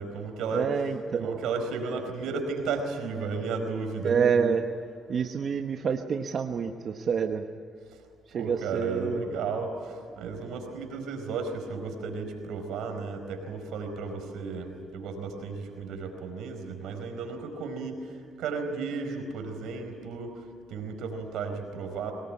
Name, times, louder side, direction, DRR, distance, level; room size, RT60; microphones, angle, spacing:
voice 1, 0.0-0.7 1.2-4.1 8.3-20.4 20.7-22.1, right 4 dB, 85° right, 5 dB, 4.7 m, -34 dB
voice 2, 0.5-1.4 4.0-4.7 5.1-7.4 8.3-9.2, right 6 dB, 55° right, 5 dB, 1.2 m, -27 dB
23.0 x 20.0 x 9.8 m, 2.2 s
cardioid pair, 90°, 0 cm